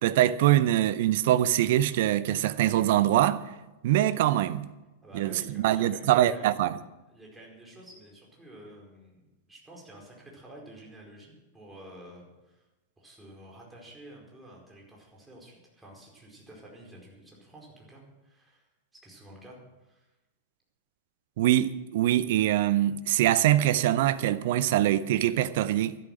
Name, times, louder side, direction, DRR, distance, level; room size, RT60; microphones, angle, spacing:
voice 1, 0.0-3.4 3.8-4.6 5.1-6.7 21.4-26.0, right 13 dB, 55° right, 0.6 m, -23 dB
voice 2, 5.0-6.5 7.1-9.2 9.5-12.6 13.0-18.7 19.0-20.1, right 1 dB, 10° right, 4.7 m, -50 dB
13.0 x 12.0 x 6.1 m
figure-of-eight pair, 90°, 0 cm